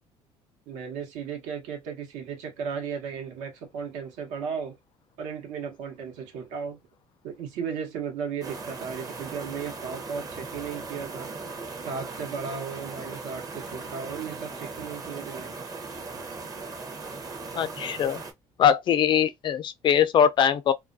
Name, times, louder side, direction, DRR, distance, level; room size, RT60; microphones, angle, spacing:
voice 1, 0.7-4.8 5.2-6.8 7.2-11.3 11.8-15.6, right 6 dB, 85° right, 0.9 m, -35 dB
sound 1, 8.4-18.3, right 4 dB, 30° right, 0.6 m, -38 dB
voice 2, 17.5-18.2 18.6-20.7, left 9 dB, 40° left, 0.3 m, -22 dB
2.3 x 2.2 x 2.5 m
cardioid pair, 125°, 12 cm